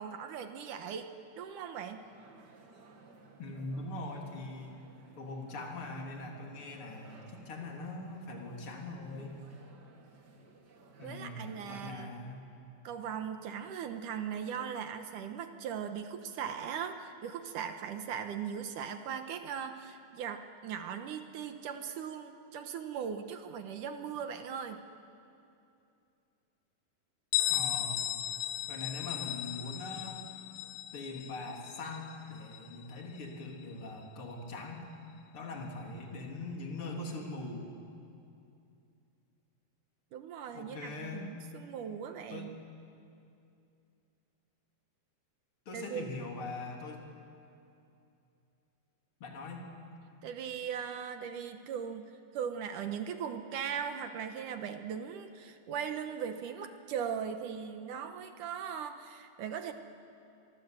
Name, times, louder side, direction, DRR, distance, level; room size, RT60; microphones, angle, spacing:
voice 1, 0.0-2.0 11.0-12.1 12.8-24.8 40.1-42.5 45.7-46.1 50.2-59.7, right 7 dB, 70° right, 7 dB, 2.4 m, -39 dB
sound 1, 1.9-11.7, right 3 dB, 40° right, 1.7 m, -58 dB
voice 2, 3.4-4.8 5.2-9.5 11.0-12.5 27.5-28.1 28.7-30.2 30.9-34.9 35.3-37.7 40.5-41.3 42.3-42.5 45.7-47.0 49.2-49.7, left 2 dB, 40° left, 0 dB, 3.8 m, -42 dB
Bell, 27.3-32.8, left 13 dB, 75° left, 1.8 m, -35 dB
29.5 x 23.5 x 8.1 m, 2.6 s
omnidirectional pair, 4.2 m